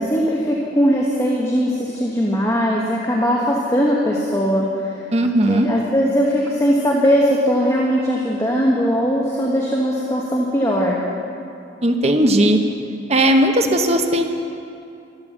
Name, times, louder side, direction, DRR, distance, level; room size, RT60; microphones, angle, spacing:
voice 1, 0.0-4.9 5.5-11.0, equal, 15° left, -3 dB, 1.3 m, -19 dB
voice 2, 5.1-5.7 11.8-12.6 13.1-14.2, right 1 dB, 35° right, 4 dB, 1.0 m, -16 dB
13.0 x 12.5 x 7.4 m, 2.5 s
head